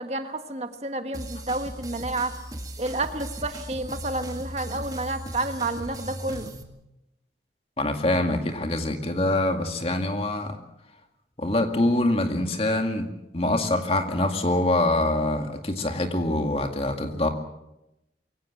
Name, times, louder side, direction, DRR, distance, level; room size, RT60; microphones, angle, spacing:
voice 1, 0.0-2.3 2.8-6.5, right 2 dB, 40° right, 8 dB, 1.4 m, -30 dB
sound 1, 1.1-6.6, right 1 dB, 20° right, 1.9 m, -38 dB
voice 2, 7.8-10.6 11.4-13.1 13.3-17.3, left 1 dB, 35° left, 5 dB, 2.2 m, -24 dB
23.0 x 17.0 x 7.7 m, 0.90 s
head